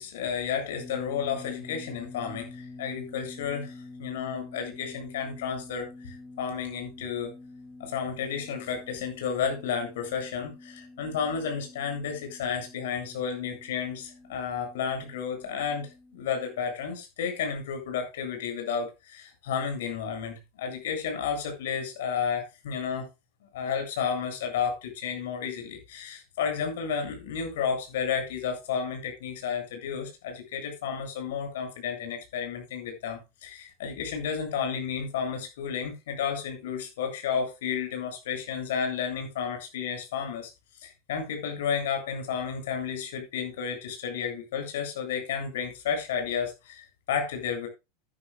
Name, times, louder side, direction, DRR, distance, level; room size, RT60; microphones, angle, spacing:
voice 1, 0.0-7.3 7.8-23.1 23.5-40.5 40.8-47.7, left 7 dB, 80° left, 7.8 m, -32 dB
sound 1, 0.8-16.6, left 3 dB, 10° left, 3.1 m, -47 dB
15.0 x 11.0 x 2.4 m
supercardioid pair, 125°, 0 cm